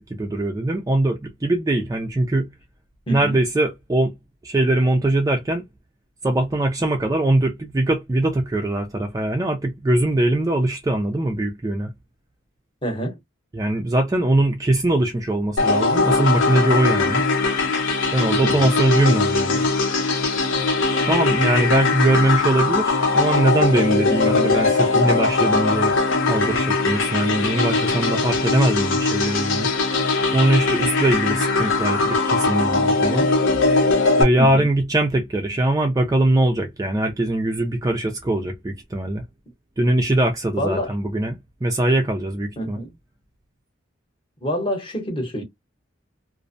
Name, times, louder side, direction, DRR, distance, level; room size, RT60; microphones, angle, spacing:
voice 1, 0.0-2.5 3.1-4.1 4.4-5.6 6.2-11.9 13.5-17.3 18.1-19.7 21.1-26.0 26.3-29.7 30.3-33.3 34.2-39.2 39.8-42.8, right 1 dB, 15° right, 0.3 m, -21 dB
voice 2, 3.1-3.4 12.8-13.2 18.4-18.7 34.4-34.7 40.6-40.9 42.6-42.9 44.4-45.4, equal, 25° left, 0.8 m, -26 dB
sound 1, 15.6-34.2, left 3 dB, 75° left, 0.7 m, -20 dB
2.5 x 2.1 x 2.5 m
head